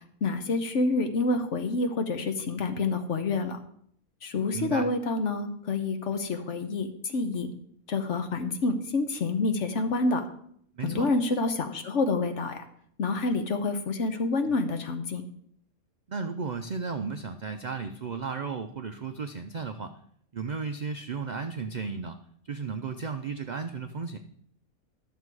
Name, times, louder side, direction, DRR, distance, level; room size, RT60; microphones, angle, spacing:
voice 1, 0.2-3.6 4.2-7.5 7.9-10.3 10.8-12.6 13.0-15.2, left 3 dB, 60° left, 8 dB, 1.2 m, -28 dB
voice 2, 4.5-4.9 10.8-11.1 16.1-20.0 20.3-22.2 22.5-24.2, right 5 dB, 80° right, 7 dB, 0.4 m, -34 dB
11.5 x 6.9 x 4.7 m, 0.65 s
omnidirectional pair, 1.5 m